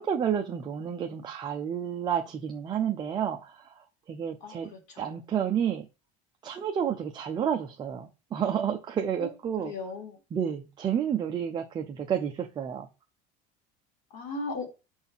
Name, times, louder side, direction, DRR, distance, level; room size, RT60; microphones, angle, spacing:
voice 1, 0.0-4.7 5.0-5.9 6.4-9.7 10.3-12.9, right 8 dB, 20° right, 0.7 m, -30 dB
voice 2, 4.4-5.2 9.2-9.3 9.6-10.2 14.1-14.7, left 3 dB, 55° left, 4.0 m, -37 dB
6.8 x 4.4 x 5.5 m
cardioid pair, 165°, 20 cm